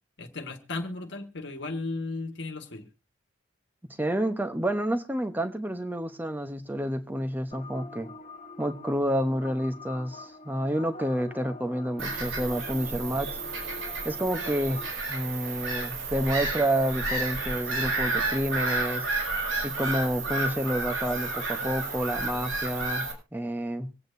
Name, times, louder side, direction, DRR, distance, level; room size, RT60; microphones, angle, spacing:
voice 1, 0.2-2.9, left 3 dB, 60° left, 1.5 m, -35 dB
voice 2, 4.0-8.1 8.6-13.4 14.0-19.1 19.6-23.1 23.3-23.9, equal, 10° right, 0.9 m, -29 dB
sound 1, 7.5-14.9, left 3 dB, 35° left, 1.2 m, -45 dB
Bird vocalization bird call bird song / Gull seagull, 12.0-23.1, right 3 dB, 90° right, 6.2 m, -31 dB
25.0 x 8.8 x 2.7 m
head